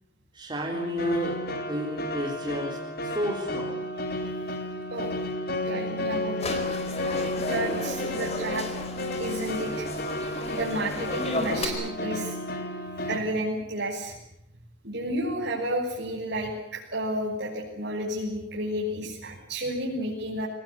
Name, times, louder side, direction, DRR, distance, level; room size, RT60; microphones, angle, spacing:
voice 1, 0.3-1.4 1.7-3.8, equal, 25° right, -1 dB, 4.0 m, -31 dB
sound 1, 0.7-13.2, left 1 dB, 55° left, 3.1 m, -32 dB
voice 2, 5.7-6.6 7.4-8.7 9.2-9.9 10.5-12.4 13.1-14.1 14.8-20.5, right 1 dB, 60° right, -4 dB, 6.3 m, -31 dB
sound 2, 6.4-11.7, left 2 dB, 35° left, 4.3 m, -34 dB
25.0 x 19.5 x 9.8 m, 0.81 s
head